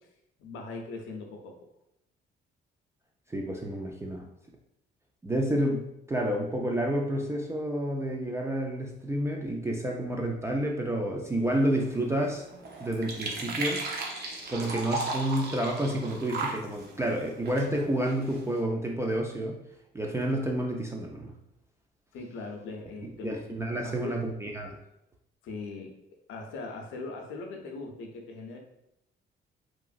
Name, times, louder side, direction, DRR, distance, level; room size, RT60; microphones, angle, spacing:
voice 1, 0.4-1.7 22.1-23.4 23.8-24.2 25.4-26.0 26.3-28.6, left 3 dB, 85° left, 2 dB, 0.5 m, -40 dB
voice 2, 3.3-4.3 5.2-5.8 6.1-12.4 12.8-13.9 14.5-19.6 19.9-21.3 23.2-24.8, right 1 dB, 15° right, 0 dB, 0.3 m, -29 dB
sound 1, 11.4-18.6, right 3 dB, 55° right, 0.6 m, -37 dB
2.9 x 2.5 x 2.4 m, 0.82 s
cardioid pair, 90°, 20 cm